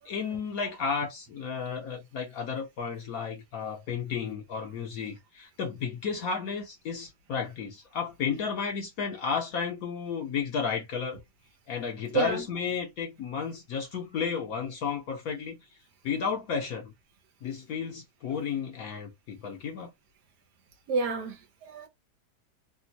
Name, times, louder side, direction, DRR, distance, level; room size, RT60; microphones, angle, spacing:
voice 1, 0.0-11.2 11.7-15.6 16.0-16.9 17.4-19.9, left 6 dB, 70° left, 1.1 m, -33 dB
voice 2, 12.1-12.5 18.3-18.4 20.9-21.9, right 4 dB, 85° right, 1.4 m, -30 dB
3.4 x 2.3 x 2.8 m
omnidirectional pair, 1.7 m